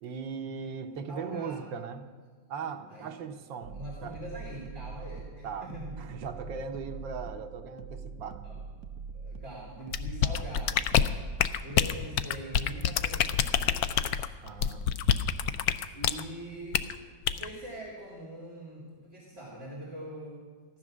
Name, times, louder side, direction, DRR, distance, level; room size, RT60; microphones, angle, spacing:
voice 1, 0.0-2.1 2.5-3.8 4.0-4.2 5.4-5.7 6.0-8.4 14.4-14.8, right 5 dB, 90° right, 5 dB, 1.7 m, -38 dB
voice 2, 1.1-1.6 2.9-3.4 3.7-6.0 8.4-8.6 9.1-11.1 11.6-14.1 15.9-16.8 17.3-20.4, right 1 dB, 35° right, -4 dB, 3.1 m, -43 dB
sound 1, 3.6-11.9, right 5 dB, 70° right, 1.0 m, -43 dB
sound 2, 9.9-16.2 16.7-16.9 17.3-17.5, left 9 dB, 70° left, 1.0 m, -26 dB
15.0 x 11.0 x 6.2 m, 1.5 s
omnidirectional pair, 2.0 m